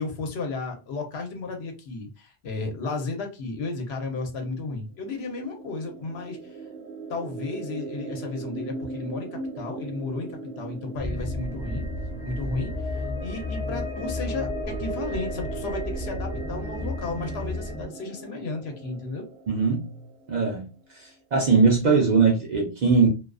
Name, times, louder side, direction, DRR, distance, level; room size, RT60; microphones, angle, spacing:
voice 1, 0.0-6.4 7.1-11.8 12.2-19.2, left 3 dB, 70° left, 3 dB, 0.9 m, -33 dB
sound 1, 4.9-20.6, right 4 dB, 80° right, 0.9 m, -39 dB
sound 2, 11.0-17.8, left 2 dB, 25° left, 0.5 m, -32 dB
voice 2, 19.5-20.0 20.3-20.7 20.9-23.1, right 4 dB, 50° right, 0 dB, 0.5 m, -21 dB
2.3 x 2.3 x 2.3 m, 0.30 s
omnidirectional pair, 1.1 m